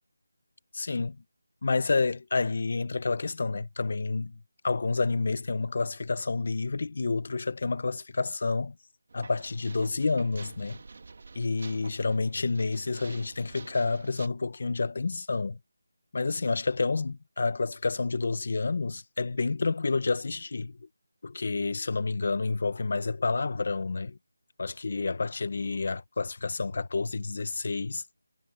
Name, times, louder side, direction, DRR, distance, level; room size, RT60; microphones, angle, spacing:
voice 1, 0.7-1.2 1.6-4.4 4.6-8.7 9.1-10.8 11.3-15.6 16.1-20.8 21.2-24.2 24.6-28.0, left 3 dB, 35° left, 1.1 m, -29 dB
sound 1, 9.1-14.3, right 4 dB, 35° right, 2.1 m, -48 dB
figure-of-eight pair, 180°, 0 cm